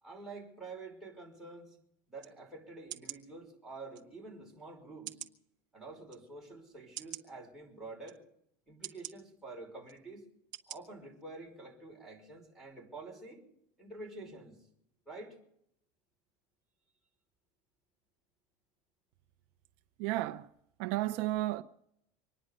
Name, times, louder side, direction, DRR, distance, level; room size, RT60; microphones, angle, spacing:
voice 1, 0.0-1.8 2.1-5.2 5.7-8.2 8.7-10.3 10.7-13.4 13.8-14.6 15.1-15.4, right 3 dB, 5° right, 5.3 m, -48 dB
sound 1, 2.2-2.3 2.9-3.2 3.9-4.0 5.0-5.4 6.1-6.2 6.9-7.2 8.0-8.2 8.8-9.1 9.9-10.0 10.5-10.8 11.2-11.3, right 11 dB, 35° right, 1.4 m, -44 dB
voice 2, 20.0-20.5 20.8-21.6, right 16 dB, 60° right, 0.6 m, -32 dB
25.5 x 10.5 x 5.3 m
cardioid pair, 160°, 12 cm